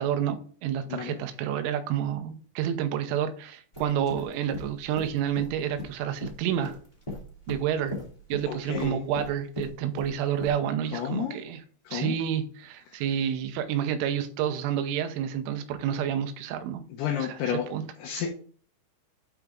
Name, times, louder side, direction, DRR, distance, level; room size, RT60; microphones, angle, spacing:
voice 1, 0.0-6.8 7.5-7.9 8.3-11.6 11.9-16.8 17.2-17.8, right 9 dB, 90° right, 8 dB, 3.3 m, -29 dB
sound 1, 3.7-10.6, left 1 dB, 15° left, 1.3 m, -38 dB
voice 2, 8.5-9.0 10.9-11.4 11.9-12.2 17.0-17.7 18.0-18.3, left 8 dB, 75° left, 3 dB, 2.5 m, -31 dB
9.1 x 4.7 x 3.8 m, 0.43 s
omnidirectional pair, 5.7 m